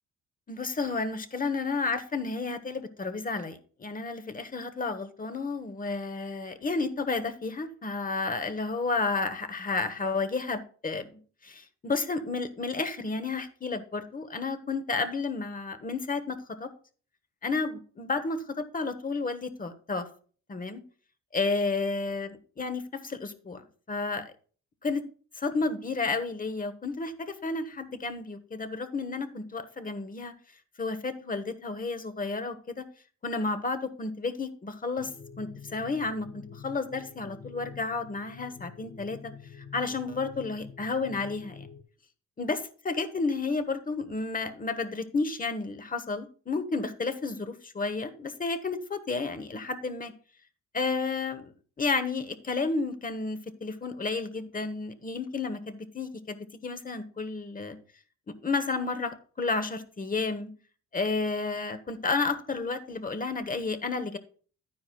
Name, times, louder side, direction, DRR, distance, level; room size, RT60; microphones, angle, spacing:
voice 1, 0.5-16.7 17.4-20.1 20.5-20.8 21.3-22.3 22.6-23.6 23.9-24.3 24.8-25.0 25.4-30.3 30.8-32.8 33.2-35.1 35.4-39.3 39.7-41.7 42.4-50.1 50.7-51.5 51.8-57.8 58.4-60.5 60.9-64.2, left 3 dB, 30° left, 9 dB, 1.0 m, -31 dB
sound 1, 35.0-41.8, left 6 dB, 70° left, 1.5 m, -47 dB
11.0 x 9.6 x 2.3 m, 0.42 s
cardioid pair, 90°, 30 cm